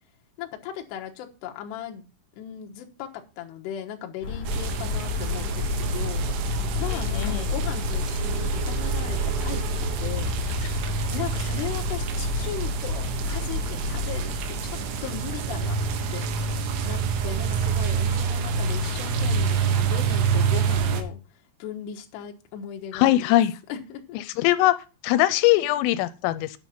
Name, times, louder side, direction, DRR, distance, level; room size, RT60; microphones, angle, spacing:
voice 1, 0.4-2.1 2.3-10.4 11.1-21.2 21.6-23.4 23.7-24.2, left 9 dB, 70° left, 2 dB, 3.1 m, -37 dB
Curtain window N, 4.2-14.3, left 4 dB, 30° left, 4.0 m, -30 dB
sound 1, 4.5-21.0, right 5 dB, 80° right, 3.8 m, -27 dB
voice 2, 7.1-7.5 22.9-23.5 24.4-24.7 25.0-26.6, left 15 dB, 90° left, 13 dB, 3.3 m, -21 dB
10.0 x 6.3 x 5.7 m, 0.32 s
omnidirectional pair, 5.7 m